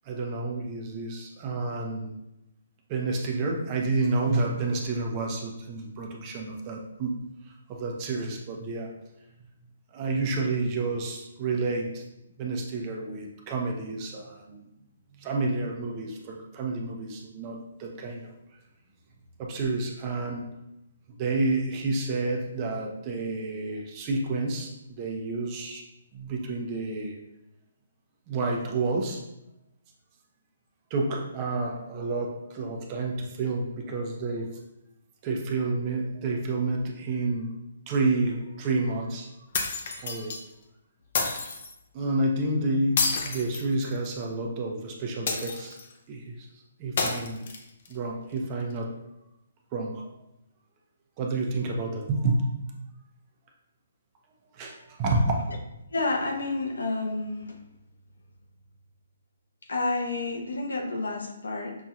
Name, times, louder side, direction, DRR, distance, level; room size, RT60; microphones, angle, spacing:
voice 1, 0.0-2.1 2.9-7.2 7.7-8.9 9.9-12.0 12.4-14.6 15.1-18.3 19.4-20.4 21.2-25.8 26.1-27.2 28.3-29.2 30.9-34.5 35.2-37.6 37.9-39.3 40.0-40.3 41.9-45.8 46.1-46.5 46.8-47.4 47.9-48.9 49.7-50.0 51.2-52.5 54.5-55.4, right 3 dB, 30° right, 0 dB, 0.7 m, -29 dB
sound 1, 39.5-40.4 41.1-41.7 43.0-44.2 45.3-45.9 47.0-47.9, left 4 dB, 55° left, 0.6 m, -29 dB
voice 2, 55.9-57.6 59.7-61.7, left 3 dB, 85° left, 1 dB, 0.8 m, -29 dB
5.9 x 2.8 x 2.4 m, 0.90 s
hypercardioid pair, 145°, 0 cm